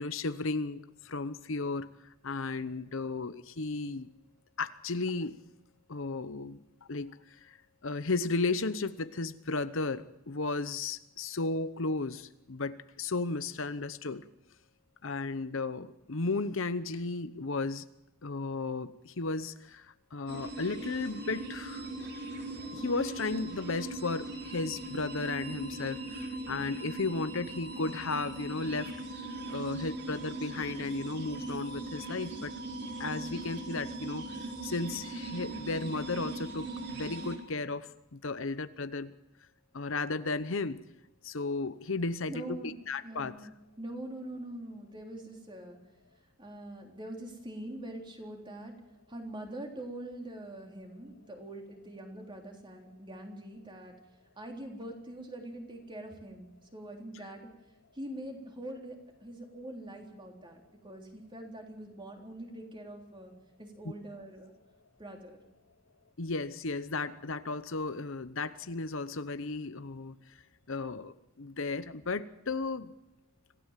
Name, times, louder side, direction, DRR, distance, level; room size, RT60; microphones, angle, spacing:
voice 1, 0.0-1.9 2.2-4.1 4.6-5.4 5.9-6.6 6.9-7.6 7.8-14.2 15.0-17.8 18.2-19.9 20.1-21.9 22.7-28.9 29.5-32.5 33.0-34.2 34.6-39.1 39.7-40.8 41.2-43.4 66.2-70.2 70.7-72.9, left 3 dB, 60° left, 12 dB, 0.9 m, -34 dB
sound 1, 20.3-37.4, right 2 dB, 50° right, 4.5 m, -40 dB
voice 2, 42.3-42.7 43.0-45.8 46.4-48.8 49.1-53.9 54.4-57.5 57.9-63.3 63.6-64.5 65.0-65.4, right 1 dB, 20° right, 2 dB, 3.7 m, -44 dB
26.0 x 16.0 x 7.5 m, 0.89 s
head